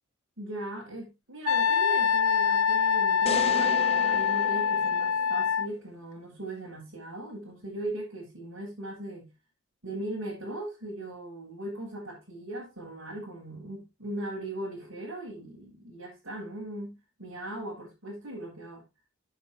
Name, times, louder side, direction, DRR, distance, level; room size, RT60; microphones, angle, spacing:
voice 1, 0.4-9.3 9.8-18.8, right 1 dB, 75° right, 7.9 m, -39 dB
Wind instrument woodwind instrument, 1.5-5.7, left 6 dB, 85° left, 0.5 m, -24 dB
sound 1, 3.3-5.6, left 4 dB, 30° left, 0.4 m, -36 dB
11.5 x 8.9 x 3.1 m
head